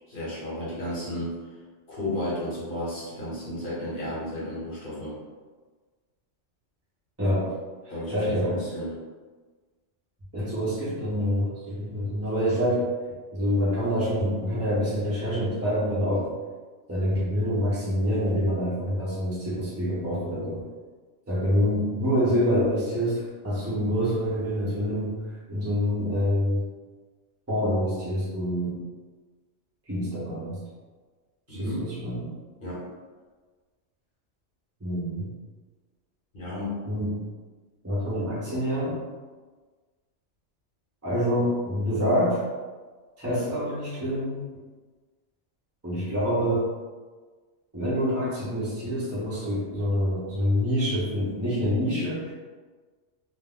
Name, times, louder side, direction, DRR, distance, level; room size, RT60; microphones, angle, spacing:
voice 1, 0.1-1.4 1.9-5.1 7.9-8.9 31.5-31.9 32.6-32.8 36.3-36.8, left 1 dB, 45° left, -8 dB, 1.1 m, -33 dB
voice 2, 7.2-7.5 8.1-8.6 10.3-12.9 13.3-16.3 16.9-20.6 21.3-25.1 25.5-26.6 27.5-28.8 29.9-30.6 31.5-32.3 34.8-35.3 36.8-37.2 37.8-39.0 41.0-42.4 43.2-44.4 45.8-46.7 47.7-52.3, equal, 20° right, -8 dB, 0.4 m, -26 dB
2.4 x 2.1 x 3.6 m, 1.4 s
omnidirectional pair, 1.3 m